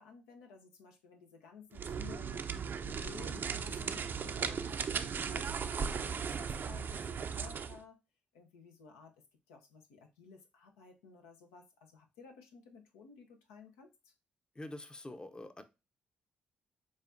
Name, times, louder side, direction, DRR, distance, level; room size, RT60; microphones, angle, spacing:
voice 1, 0.0-8.0 8.3-9.1 9.5-14.1, left 5 dB, 85° left, 0.6 m, -55 dB
sound 1, 1.7-7.8, right 6 dB, 50° right, 0.5 m, -37 dB
voice 2, 14.5-15.6, left 1 dB, 20° left, 0.6 m, -45 dB
7.2 x 2.4 x 2.6 m
hypercardioid pair, 45°, 4 cm